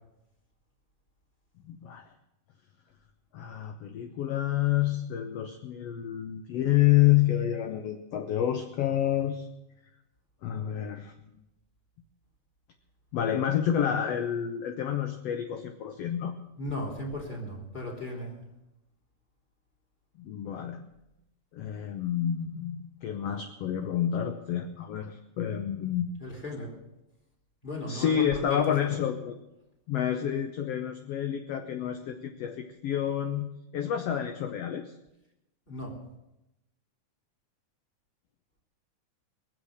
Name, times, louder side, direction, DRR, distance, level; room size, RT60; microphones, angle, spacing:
voice 1, 1.6-2.0 3.3-9.5 10.4-11.1 13.1-16.3 20.2-20.8 21.5-26.1 27.9-29.4 29.9-34.9, left 11 dB, 70° left, 6 dB, 1.6 m, -29 dB
voice 2, 16.6-18.4 26.2-26.7 27.6-29.0 35.7-36.0, left 1 dB, 15° left, -1 dB, 2.9 m, -36 dB
23.0 x 7.8 x 6.4 m, 0.90 s
omnidirectional pair, 3.7 m